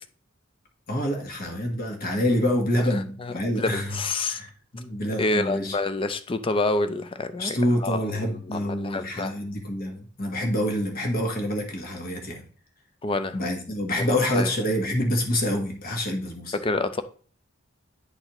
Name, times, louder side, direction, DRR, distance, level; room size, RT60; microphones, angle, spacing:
voice 1, 0.9-4.0 4.3-5.8 7.4-12.4 13.3-16.5, left 1 dB, 45° left, 2 dB, 1.3 m, -27 dB
voice 2, 3.2-4.4 5.2-9.3 13.0-13.3 14.0-14.5 16.6-17.0, left 2 dB, 25° left, 10 dB, 0.4 m, -28 dB
9.9 x 4.1 x 3.0 m, 0.43 s
head